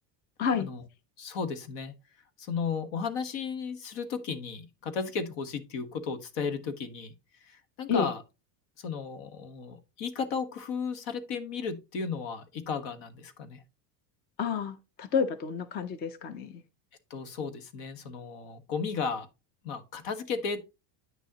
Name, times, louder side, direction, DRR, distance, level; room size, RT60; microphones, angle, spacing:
voice 1, 1.2-1.9 2.4-7.1 7.4-8.2 8.8-13.6 17.1-19.3 19.6-20.7, left 5 dB, 65° left, 1.5 m, -34 dB
voice 2, 14.4-16.6, left 6 dB, 25° left, 0.4 m, -30 dB
9.2 x 6.2 x 2.9 m
cardioid pair, 150°, 48 cm